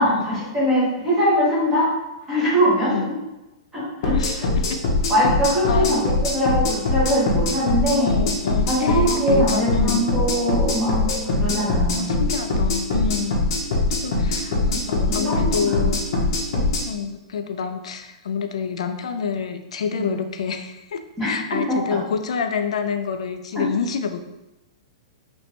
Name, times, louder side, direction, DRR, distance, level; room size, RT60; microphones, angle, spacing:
voice 1, 0.0-1.9 2.3-2.9 3.7-4.1 5.1-8.2 8.7-12.2 15.0-15.8 20.0-20.1 21.2-21.3 21.7-21.8, equal, 5° right, -10 dB, 1.1 m, -22 dB
sound 1, 4.0-16.8, left 2 dB, 45° left, 0.8 m, -22 dB
voice 2, 4.1-4.8 5.7-6.0 8.0-10.1 11.9-13.4 13.9-16.1 16.9-24.2, left 6 dB, 85° left, 7 dB, 0.4 m, -28 dB
3.2 x 3.0 x 2.9 m, 0.98 s
hypercardioid pair, 180°, 3 cm